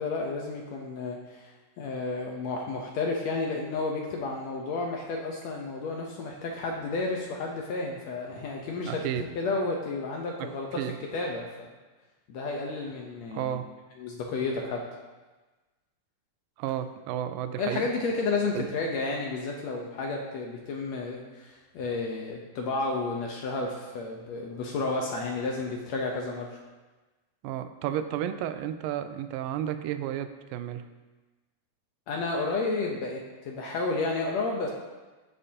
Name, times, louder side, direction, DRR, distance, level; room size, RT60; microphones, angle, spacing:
voice 1, 0.0-10.8 11.1-11.5 12.3-13.6 14.0-14.8 17.6-26.6 32.1-34.7, left 3 dB, 75° left, 0 dB, 1.6 m, -31 dB
voice 2, 8.8-9.2 10.4-10.5 10.8-11.0 13.3-13.7 16.6-17.9 18.5-18.7 27.4-30.9, right 11 dB, 80° right, 10 dB, 2.2 m, -32 dB
14.5 x 6.8 x 2.8 m, 1.2 s
omnidirectional pair, 4.1 m